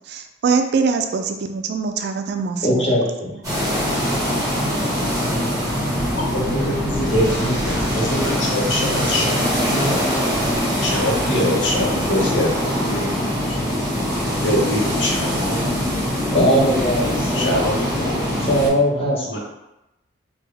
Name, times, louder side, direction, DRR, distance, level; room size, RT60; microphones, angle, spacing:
voice 1, 0.1-2.9 3.3-3.4, right 5 dB, 60° right, 6 dB, 0.3 m, -23 dB
voice 2, 2.6-3.3 16.3-17.5 18.4-19.4, equal, 35° left, -5 dB, 0.9 m, -19 dB
sound 1, 3.4-18.7, equal, 20° right, 1.4 m, -22 dB
voice 3, 6.2-10.1 10.8-13.6 14.4-15.6 17.3-18.1 19.2-19.4, left 1 dB, 70° left, -2 dB, 0.8 m, -24 dB
3.4 x 2.2 x 3.3 m, 0.93 s
head